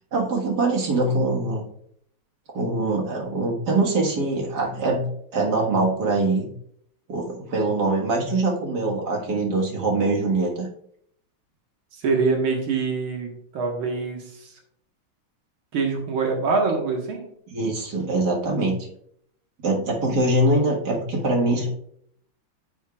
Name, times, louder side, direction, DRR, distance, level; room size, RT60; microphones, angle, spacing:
voice 1, 0.1-1.7 2.5-5.1 5.3-6.5 7.1-10.7 17.5-18.8 19.6-21.7, right 2 dB, 55° right, -1 dB, 2.1 m, -23 dB
voice 2, 12.0-14.2 15.7-17.3, right 4 dB, 90° right, 1 dB, 2.3 m, -24 dB
10.0 x 6.5 x 2.4 m, 0.68 s
omnidirectional pair, 2.2 m